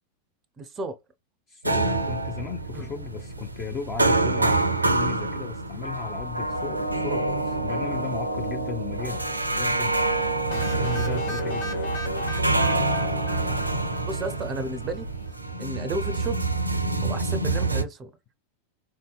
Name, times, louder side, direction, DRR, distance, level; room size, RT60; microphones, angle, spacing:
voice 1, 0.6-1.0 2.7-2.9 14.1-15.1 15.6-16.4 17.0-18.1, right 2 dB, 25° right, 0.5 m, -33 dB
voice 2, 1.5-9.2 9.5-10.1 10.5-11.8, left 6 dB, 30° left, 0.6 m, -35 dB
sound 1, 1.6-17.8, right 2 dB, 85° right, 0.4 m, -26 dB
sound 2, 10.5-14.3, left 2 dB, 55° left, 1.0 m, -35 dB
3.6 x 2.7 x 2.2 m
figure-of-eight pair, 90°, 0 cm